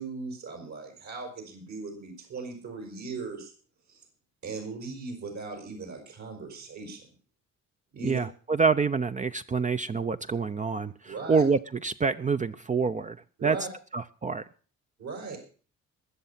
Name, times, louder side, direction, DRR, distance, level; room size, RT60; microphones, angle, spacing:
voice 1, 0.0-3.5 3.9-4.0 4.4-7.0 7.9-8.2 11.1-11.4 13.4-13.7 15.0-15.4, right 4 dB, 65° right, 3 dB, 5.5 m, -38 dB
voice 2, 8.0-13.2 13.4-13.6 13.9-14.4, right 5 dB, 25° right, 9 dB, 0.6 m, -27 dB
21.0 x 7.1 x 5.7 m, 0.40 s
cardioid pair, 90°, 30 cm